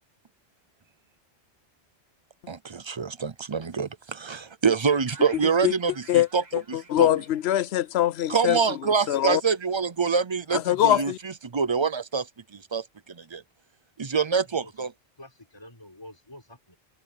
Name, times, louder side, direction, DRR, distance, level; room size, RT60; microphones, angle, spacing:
voice 1, 2.5-7.1 8.3-13.4 14.0-14.9, right 5 dB, 30° right, 0.6 m, -26 dB
sound 1, 4.9-8.8, right 3 dB, 65° right, 3.0 m, -50 dB
voice 2, 6.5-8.6 9.1-9.4 10.5-11.2, left 12 dB, 75° left, 0.8 m, -23 dB
voice 3, 15.2-16.8, left 1 dB, 25° left, 4.3 m, -48 dB
omnidirectional pair, 1.1 m